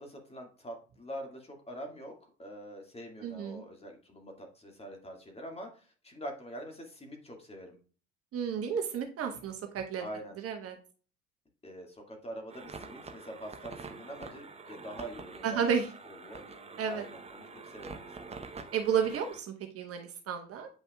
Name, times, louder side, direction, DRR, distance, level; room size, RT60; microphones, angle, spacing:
voice 1, 0.0-7.8 10.0-10.4 11.6-15.6 16.1-16.4 16.9-18.4, right 1 dB, 15° left, 2 dB, 2.0 m, -45 dB
voice 2, 3.2-3.6 8.3-10.1 10.4-10.8 15.4-15.9 16.8-17.1 18.7-20.7, right 7 dB, 40° right, 4 dB, 1.1 m, -32 dB
sound 1, 12.5-19.4, right 4 dB, 20° right, 0.9 m, -46 dB
8.6 x 5.4 x 2.3 m, 0.38 s
figure-of-eight pair, 65°, 36 cm